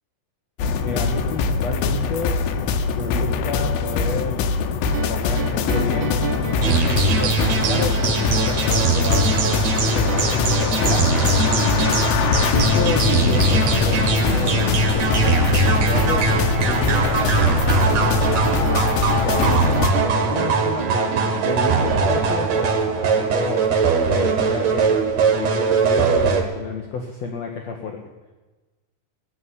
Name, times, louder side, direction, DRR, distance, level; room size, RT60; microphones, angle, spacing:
sound 1, 0.6-19.9, left 5 dB, 90° left, 2.7 m, -22 dB
voice 1, 0.8-2.4 2.9-4.5 5.1-6.2 6.5-9.3 9.8-16.3 16.7-19.7 20.0-23.8 24.1-25.0 25.3-28.0, left 4 dB, 60° left, 2 dB, 2.0 m, -30 dB
sound 2, 4.8-22.7, right 6 dB, 80° right, 1.1 m, -31 dB
sound 3, 6.6-26.4, right 4 dB, 55° right, 2.6 m, -21 dB
19.0 x 7.4 x 9.9 m, 1.2 s
omnidirectional pair, 4.1 m